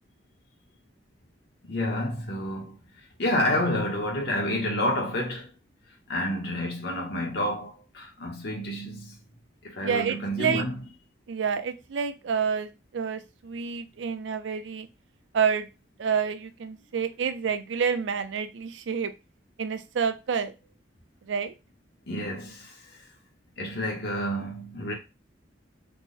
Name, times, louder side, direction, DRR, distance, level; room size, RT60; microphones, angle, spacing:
voice 1, 1.7-2.8 3.2-5.5 6.1-9.1 9.6-10.8 22.1-22.8 23.6-24.9, left 1 dB, 65° left, 0.9 m, -29 dB
voice 2, 9.8-10.6 11.3-14.9 15.3-15.7 16.0-19.1 19.6-20.5 21.3-21.5, right 6 dB, 80° right, 0.4 m, -28 dB
3.6 x 2.0 x 3.7 m
head